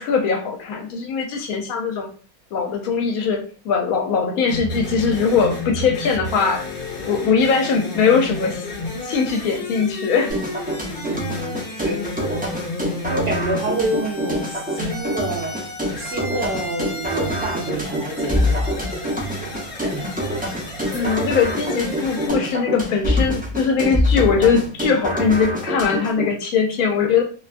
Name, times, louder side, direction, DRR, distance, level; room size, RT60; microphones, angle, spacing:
voice 1, 0.0-2.1 2.5-6.7 7.0-8.6 9.0-10.4 20.9-27.2, left 5 dB, 80° left, 4 dB, 1.1 m, -21 dB
sound 1, 4.5-22.3, left 2 dB, 50° left, 1.0 m, -32 dB
sound 2, 10.3-26.3, equal, 15° right, 0.3 m, -25 dB
voice 2, 10.9-12.5 13.0-15.6 16.0-20.3 20.9-21.1, right 2 dB, 60° right, -4 dB, 0.7 m, -29 dB
2.7 x 2.2 x 2.4 m, 0.40 s
omnidirectional pair, 1.5 m